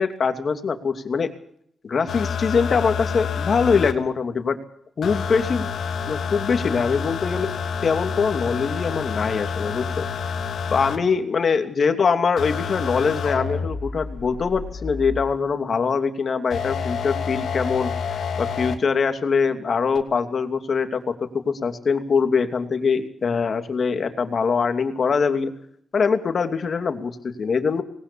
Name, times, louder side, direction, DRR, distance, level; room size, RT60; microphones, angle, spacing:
voice 1, 0.0-1.3 1.8-4.6 5.0-5.7 6.1-7.5 7.8-10.3 10.7-25.5 25.9-27.8, left 5 dB, 55° left, 7 dB, 2.7 m, -23 dB
sound 1, 2.1-3.9 5.0-11.0 12.4-15.3 16.5-18.7 19.9-20.0, left 6 dB, 70° left, 2.7 m, -28 dB
20.0 x 19.0 x 7.0 m, 0.69 s
supercardioid pair, 50°, 0 cm